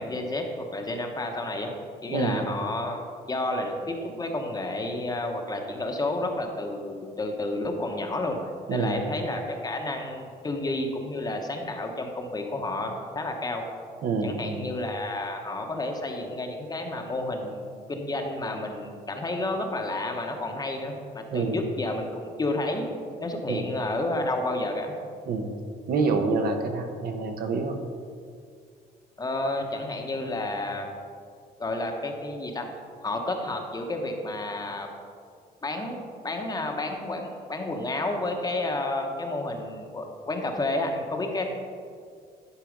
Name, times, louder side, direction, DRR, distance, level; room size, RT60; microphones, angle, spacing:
voice 1, 0.0-1.7 2.0-8.4 8.7-13.6 14.2-22.9 23.2-24.9 29.2-30.9 31.6-32.7 33.0-34.9 35.6-41.4, left 2 dB, 25° left, 3 dB, 1.0 m, -31 dB
voice 2, 2.1-2.5 8.7-9.0 14.0-14.7 21.3-21.6 23.5-23.6 25.3-25.5 25.9-27.8, right 4 dB, 60° right, 5 dB, 1.0 m, -27 dB
11.0 x 4.6 x 5.2 m, 2.2 s
cardioid pair, 110°, 17 cm